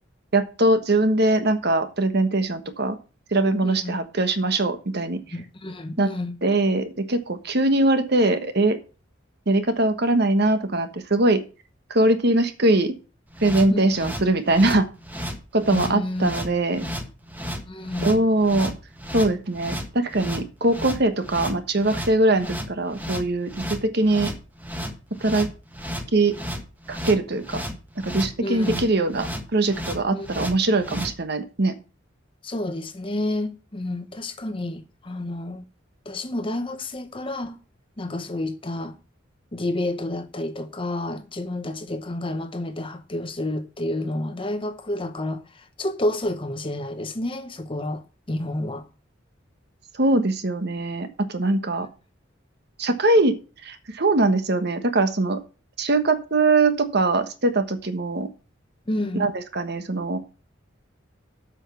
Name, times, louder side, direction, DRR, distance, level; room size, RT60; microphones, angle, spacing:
voice 1, 0.3-3.0 3.3-5.2 6.0-6.1 6.4-8.8 9.5-11.4 11.9-12.9 13.4-14.9 15.5-16.8 18.0-18.7 19.1-24.3 25.2-25.5 26.1-26.3 26.9-27.6 28.0-31.7 50.0-51.9 52.8-53.4 53.6-55.4 55.8-58.3 59.1-60.2, right 2 dB, 55° right, 1.3 m, -22 dB
voice 2, 3.6-4.0 5.3-6.4 13.7-14.1 15.7-16.3 16.8-16.9 17.7-18.2 28.4-28.9 30.1-30.3 32.4-35.7 36.1-37.6 38.0-38.9 39.5-45.4 45.8-48.0 48.3-48.8 58.9-59.3, left 1 dB, 25° left, 0.8 m, -30 dB
sound 1, 13.3-31.1, equal, 10° right, 1.4 m, -33 dB
8.1 x 6.2 x 6.8 m
head